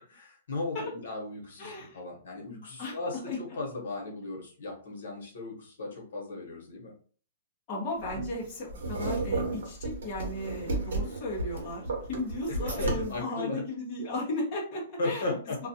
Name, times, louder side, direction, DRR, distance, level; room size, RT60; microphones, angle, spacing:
voice 1, 0.1-6.9 12.5-13.6 15.0-15.6, left 2 dB, 70° left, 0 dB, 1.0 m, -36 dB
voice 2, 1.6-2.0 2.8-3.0 3.3-3.6 7.7-11.8 12.1-15.4 15.6-15.7, left 2 dB, 20° left, -6 dB, 0.8 m, -35 dB
sound 1, 8.0-13.2, right 2 dB, 65° right, 0.9 m, -33 dB
2.3 x 2.2 x 2.7 m, 0.43 s
hypercardioid pair, 175°, 0 cm